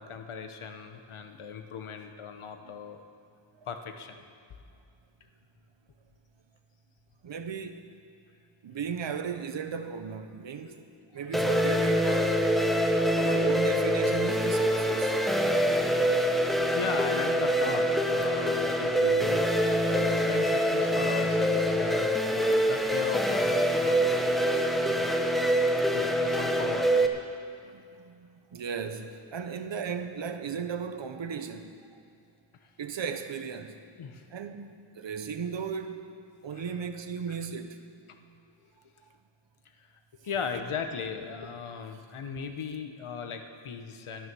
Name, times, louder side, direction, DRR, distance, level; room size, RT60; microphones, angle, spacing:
voice 1, 0.0-3.0 3.7-4.2 10.6-10.7 11.1-11.4 16.7-19.5 19.9-24.4 24.8-25.3 25.9-27.3 34.0-34.2 36.5-36.8 37.3-37.4 39.8-39.9 40.2-44.3, left 6 dB, 85° left, 1.1 m, -38 dB
voice 2, 7.2-7.8 8.6-10.9 11.1-12.4 13.2-15.2 27.6-32.0 32.8-33.8 34.3-36.1 36.4-37.8, right 6 dB, 65° right, 1.0 m, -36 dB
sound 1, 11.3-27.1, equal, ahead, 0.7 m, -25 dB
12.5 x 12.5 x 6.2 m
wide cardioid pair, 130°, 48 cm